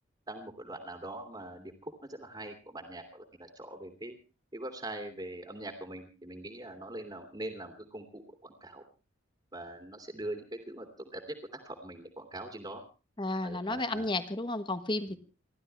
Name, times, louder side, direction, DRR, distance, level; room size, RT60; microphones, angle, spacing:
voice 1, 0.3-4.2 4.5-8.8 9.5-12.8 13.4-14.1 15.1-15.2, right 1 dB, 20° right, 4 dB, 2.6 m, -42 dB
voice 2, 13.2-15.2, left 2 dB, 25° left, 10 dB, 1.4 m, -32 dB
29.5 x 12.5 x 3.3 m, 0.33 s
head